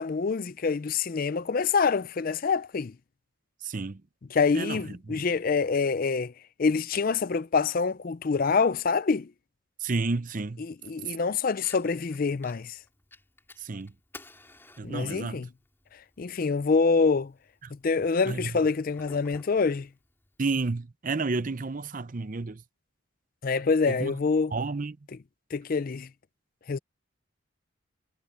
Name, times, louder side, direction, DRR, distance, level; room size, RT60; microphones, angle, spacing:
voice 1, 0.0-2.9 4.3-6.3 6.6-9.3 10.6-12.8 14.8-15.5 16.2-17.3 17.8-19.9 23.4-24.5 25.5-26.1 26.7-26.8, left 4 dB, 40° left, 0.4 m, -26 dB
voice 2, 3.6-4.0 4.5-4.8 5.1-5.2 9.8-10.6 13.6-13.9 14.8-15.4 17.6-17.7 18.3-18.5 20.4-22.6 23.9-24.1 24.5-25.0, right 3 dB, 40° right, 0.6 m, -31 dB
Fire, 11.5-20.5, left 2 dB, 10° left, 3.5 m, -55 dB
head